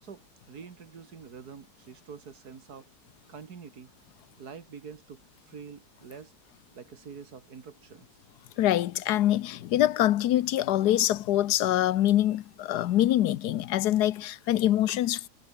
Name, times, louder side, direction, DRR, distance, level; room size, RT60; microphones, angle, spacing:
voice 1, 0.0-2.9 3.3-3.9 4.4-6.3 6.7-8.1, right 6 dB, 70° right, 2.4 m, -46 dB
voice 2, 8.6-15.3, left 13 dB, 85° left, 1.3 m, -24 dB
omnidirectional pair, 1.7 m